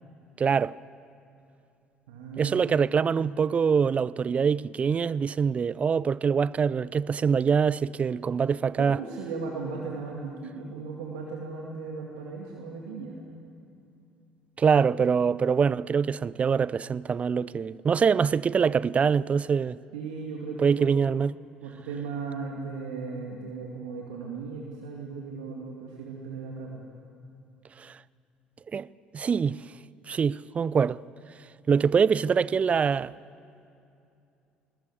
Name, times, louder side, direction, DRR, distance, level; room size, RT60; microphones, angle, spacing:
voice 1, 0.4-0.7 2.4-9.0 14.6-19.8 20.6-21.4 27.8-28.0 28.7-28.9 29.1-29.6 30.1-31.0 31.7-33.1, right 6 dB, 35° right, 0.4 m, -24 dB
voice 2, 2.1-2.7 8.8-13.3 19.9-20.9 21.6-26.8, right 4 dB, 75° right, 2.2 m, -37 dB
20.5 x 20.0 x 8.2 m
hypercardioid pair, 55°, 4 cm